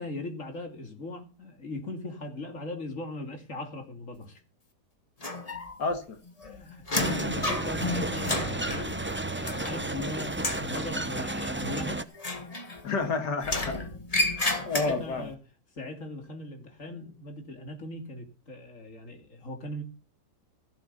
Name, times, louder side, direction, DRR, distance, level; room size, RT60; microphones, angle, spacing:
voice 1, 0.0-4.4 6.4-12.1 14.4-15.4 15.7-19.8, left 2 dB, 50° left, 2.9 m, -39 dB
sound 1, 5.2-6.0 6.3-10.0 10.3-10.7 12.1-13.0 13.4-15.2, left 2 dB, 20° left, 1.7 m, -32 dB
voice 2, 5.8-6.2 12.8-13.8 14.7-15.3, left 3 dB, 85° left, 2.5 m, -29 dB
sound 2, 7.0-12.0, right 2 dB, 15° right, 0.3 m, -32 dB
15.0 x 8.1 x 5.5 m
omnidirectional pair, 1.8 m